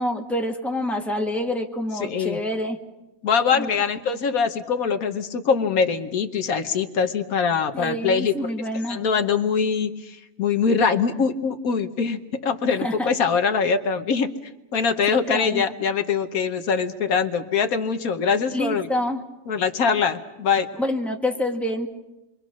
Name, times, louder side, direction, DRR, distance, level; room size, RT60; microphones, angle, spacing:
voice 1, 0.0-2.8 3.5-3.7 7.7-9.0 12.8-13.1 15.3-15.6 18.5-19.2 20.8-21.9, left 1 dB, ahead, 1 dB, 1.9 m, -27 dB
voice 2, 1.9-2.4 3.2-8.5 8.9-14.3 14.7-18.9 19.5-20.7, left 6 dB, 75° left, 7 dB, 1.5 m, -23 dB
28.5 x 23.5 x 6.2 m, 0.99 s
omnidirectional pair, 1.5 m